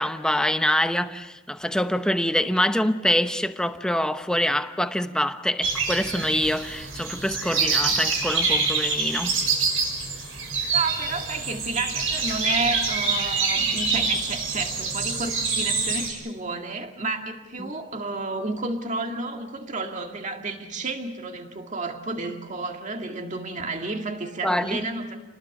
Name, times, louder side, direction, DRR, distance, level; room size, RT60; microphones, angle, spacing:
voice 1, 0.0-9.4 17.6-17.7 24.4-24.8, left 1 dB, 5° left, 0.8 m, -25 dB
sound 1, 5.6-16.1, right 4 dB, 75° right, 5.2 m, -26 dB
voice 2, 10.7-25.2, right 3 dB, 35° right, 2.1 m, -31 dB
29.5 x 20.0 x 7.2 m
head